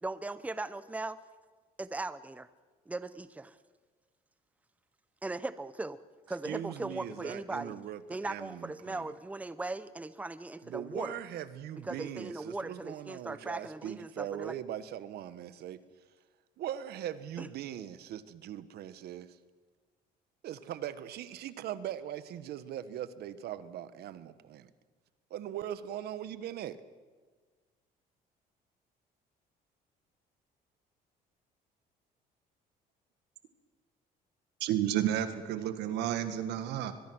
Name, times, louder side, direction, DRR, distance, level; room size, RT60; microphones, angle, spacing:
voice 1, 0.0-1.2 1.8-2.5 2.9-3.6 5.2-6.0 6.3-7.7 8.1-11.2 11.8-14.5 17.4-17.5, right 2 dB, 10° right, 15 dB, 0.8 m, -38 dB
voice 2, 6.4-9.1 10.6-15.8 16.6-19.4 20.4-24.7 25.3-26.8, right 11 dB, 70° right, 14 dB, 1.3 m, -40 dB
voice 3, 34.6-36.9, right 11 dB, 90° right, 10 dB, 1.8 m, -31 dB
22.5 x 21.5 x 6.3 m, 1.4 s
cardioid pair, 110°, 17 cm